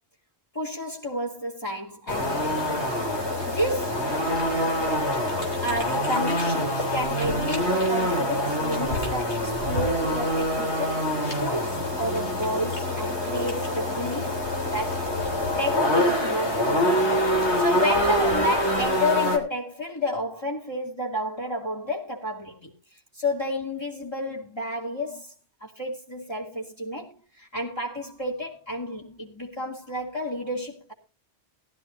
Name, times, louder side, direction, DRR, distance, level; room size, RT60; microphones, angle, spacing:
voice 1, 0.5-3.0 3.5-4.0 5.6-11.1 11.4-15.3 15.6-17.2 17.6-22.7 23.1-25.3 25.6-30.9, left 1 dB, 25° left, 2.6 m, -31 dB
sound 1, 2.1-19.4, left 1 dB, 90° left, 3.8 m, -25 dB
20.0 x 12.5 x 2.7 m
omnidirectional pair, 1.1 m